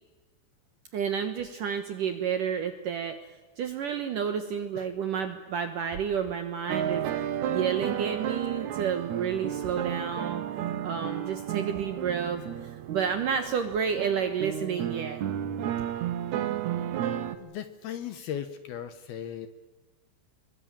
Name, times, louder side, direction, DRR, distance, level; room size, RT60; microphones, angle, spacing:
voice 1, 0.9-3.2 3.6-7.1 7.5-10.4 10.8-15.2, right 7 dB, 65° right, 8 dB, 2.1 m, -30 dB
sound 1, 6.7-17.4, right 10 dB, 85° right, 1.6 m, -32 dB
voice 2, 17.4-19.5, left 9 dB, 70° left, 10 dB, 2.6 m, -37 dB
25.0 x 23.0 x 8.9 m, 1.3 s
omnidirectional pair, 5.4 m